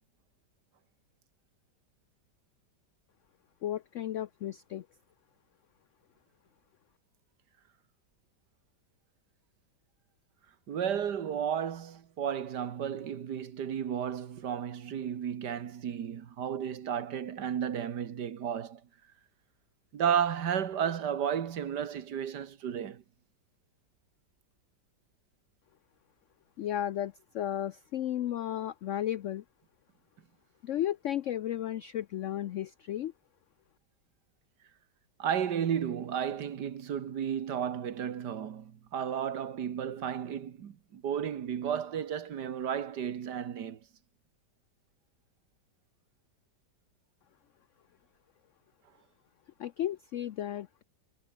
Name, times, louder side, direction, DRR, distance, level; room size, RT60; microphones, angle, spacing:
voice 1, 3.6-4.8 26.6-29.4 30.6-33.1 49.6-50.8, left 11 dB, 85° left, 0.6 m, -34 dB
voice 2, 10.7-18.8 19.9-23.0 35.2-43.8, right 8 dB, 65° right, 1.9 m, -33 dB
omnidirectional pair, 1.9 m